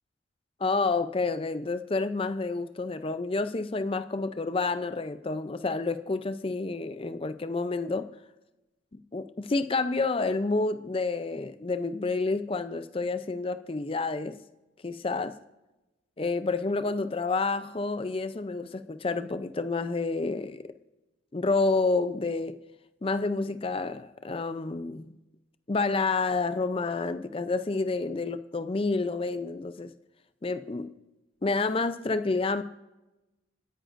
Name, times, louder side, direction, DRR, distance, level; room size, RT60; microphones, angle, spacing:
voice 1, 0.6-8.1 8.9-14.4 14.8-15.4 16.2-20.7 21.3-22.6 23.0-25.2 25.7-29.9 30.4-30.9 31.4-32.6, left 3 dB, 30° left, 0.5 m, -29 dB
29.0 x 10.0 x 2.5 m
head